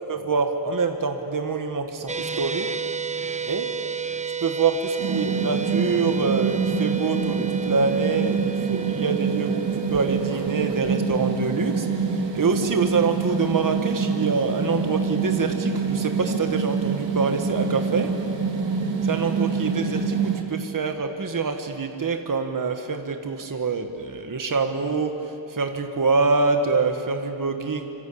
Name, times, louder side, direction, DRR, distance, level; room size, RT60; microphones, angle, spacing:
voice 1, 0.0-2.7 3.4-3.7 4.4-9.6 9.9-18.1 19.0-25.2 25.5-27.8, right 4 dB, 45° right, 5 dB, 1.7 m, -25 dB
sound 1, 2.1-14.4, right 7 dB, 15° right, 0.7 m, -33 dB
sound 2, 5.0-20.4, right 5 dB, 70° right, 3.4 m, -26 dB
26.0 x 25.5 x 8.6 m, 2.9 s
wide cardioid pair, 140°, 45 cm